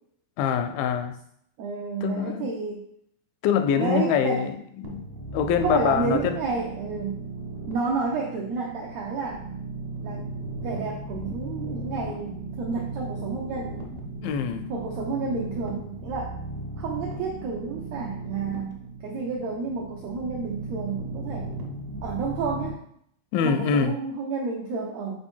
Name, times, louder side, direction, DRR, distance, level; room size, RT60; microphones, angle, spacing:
voice 1, 0.4-1.2 2.0-2.5 3.4-5.0 5.3-6.4 14.2-14.7 18.5-18.6 23.3-24.0, left 7 dB, 85° left, 9 dB, 2.3 m, -24 dB
voice 2, 1.6-2.8 3.8-4.5 5.6-7.1 7.7-9.4 10.0-10.3 10.6-13.8 14.7-16.3 16.8-18.7 19.0-21.5 22.0-22.8 23.4-25.2, right 4 dB, 80° right, -1 dB, 1.5 m, -30 dB
sound 1, 4.8-22.7, right 2 dB, 65° right, 2.0 m, -36 dB
5.3 x 4.4 x 4.4 m, 0.70 s
omnidirectional pair, 4.0 m